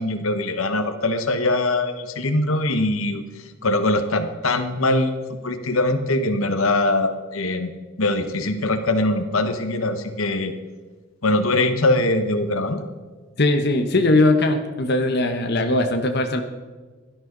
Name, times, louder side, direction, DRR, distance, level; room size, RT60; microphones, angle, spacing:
voice 1, 0.0-3.2 3.6-7.7 8.0-10.5 11.2-12.8, left 2 dB, 85° left, 8 dB, 1.3 m, -22 dB
voice 2, 13.4-16.4, left 2 dB, 50° left, 5 dB, 1.1 m, -20 dB
17.0 x 12.5 x 3.9 m, 1.4 s
head